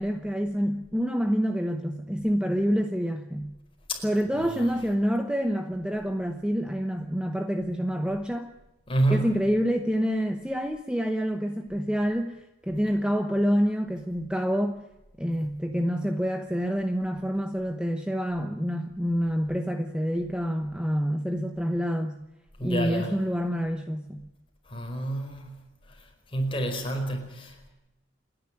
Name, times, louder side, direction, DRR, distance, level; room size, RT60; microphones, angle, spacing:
voice 1, 0.0-3.5 4.0-8.5 9.1-14.8 15.2-22.2 22.6-24.2, equal, 5° right, 6 dB, 1.0 m, -27 dB
voice 2, 4.4-4.7 8.9-9.3 22.6-23.1 24.7-25.5 26.3-27.7, right 1 dB, 25° left, 2 dB, 4.8 m, -28 dB
29.0 x 11.0 x 9.9 m, 0.95 s
head